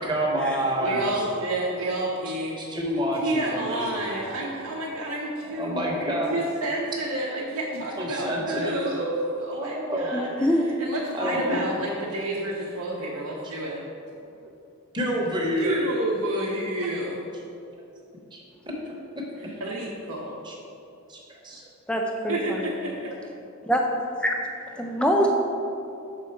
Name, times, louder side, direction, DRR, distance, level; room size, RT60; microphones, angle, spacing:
voice 1, 0.0-1.2 2.1-4.2 5.5-6.4 8.0-8.7 9.5-10.1 11.1-11.6 14.9-15.8 18.3-18.4 18.8-18.9 20.4-20.6 21.1-21.6, equal, 20° right, -2 dB, 0.8 m, -28 dB
voice 2, 0.8-2.6 3.2-5.8 6.1-10.5 10.8-13.8 15.6-17.2 19.6-20.3 22.3-23.1, right 1 dB, 75° right, -4 dB, 0.7 m, -29 dB
voice 3, 10.1-10.7 21.9-22.7 23.6-23.9 24.2-24.4 24.8-25.4, equal, 5° left, 1 dB, 0.4 m, -24 dB
6.5 x 3.7 x 4.4 m, 2.6 s
head